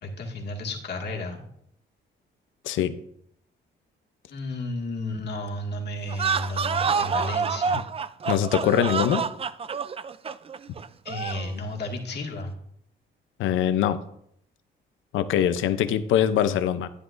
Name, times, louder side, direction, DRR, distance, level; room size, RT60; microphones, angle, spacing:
voice 1, 0.0-1.5 4.3-7.8 11.0-12.5, left 1 dB, 55° left, 0 dB, 2.0 m, -33 dB
sound 1, 6.1-11.5, right 6 dB, 30° right, 0.4 m, -28 dB
voice 2, 8.3-9.2 13.4-14.0 15.1-16.9, left 10 dB, 80° left, 11 dB, 0.7 m, -23 dB
11.0 x 9.7 x 2.6 m, 0.71 s
cardioid pair, 90°, 20 cm